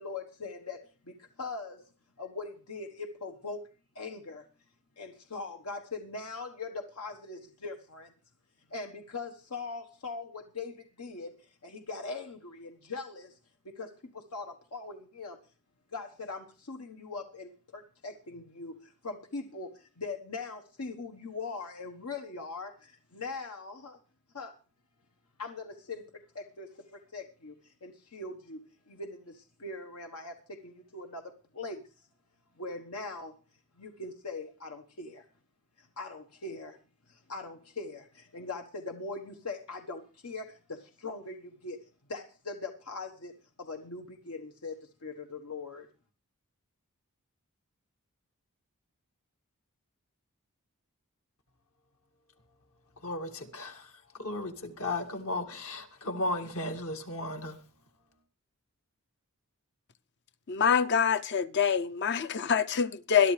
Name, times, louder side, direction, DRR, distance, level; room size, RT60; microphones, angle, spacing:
voice 1, 0.0-1.9 2.2-3.7 3.9-4.5 5.0-8.1 8.7-13.4 13.6-15.4 15.9-24.0 24.3-24.5 25.4-31.8 32.6-33.3 33.8-35.3 35.8-36.8 37.1-41.8 42.1-43.3 43.6-45.9, left 3 dB, 85° left, 1.3 m, -41 dB
voice 2, 53.0-53.9 54.2-57.6, left 2 dB, 70° left, 2.0 m, -35 dB
voice 3, 60.5-63.3, left 7 dB, 50° left, 0.6 m, -25 dB
21.5 x 11.5 x 3.3 m
head